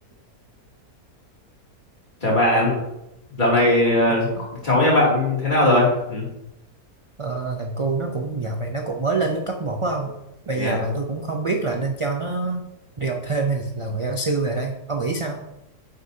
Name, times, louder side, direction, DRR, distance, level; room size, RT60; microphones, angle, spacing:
voice 1, 2.2-2.7 3.4-4.3 4.6-6.2 10.5-10.8, left 1 dB, 30° left, -6 dB, 2.9 m, -19 dB
voice 2, 7.2-10.1 10.5-12.6 13.0-15.4, right 3 dB, 40° right, 2 dB, 0.4 m, -26 dB
9.6 x 6.4 x 2.8 m, 0.89 s
omnidirectional pair, 1.6 m